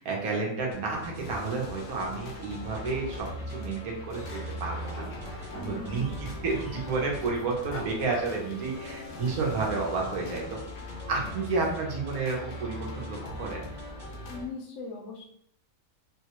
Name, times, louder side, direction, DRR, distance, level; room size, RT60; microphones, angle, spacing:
voice 1, 0.0-3.2 3.5-5.1 5.4-6.1 6.4-10.6 11.1-13.7, right 3 dB, 65° right, -1 dB, 1.3 m, -31 dB
sound 1, 0.7-14.4, left 1 dB, 35° right, 0.9 m, -45 dB
sound 2, 1.2-14.5, left 1 dB, 85° left, 1.3 m, -42 dB
Sliding door, 4.1-8.8, equal, 15° left, 0.6 m, -43 dB
voice 2, 5.6-6.1 11.2-11.6 14.3-15.2, left 4 dB, 65° left, 0 dB, 0.8 m, -40 dB
3.8 x 2.3 x 3.0 m, 0.69 s
omnidirectional pair, 1.7 m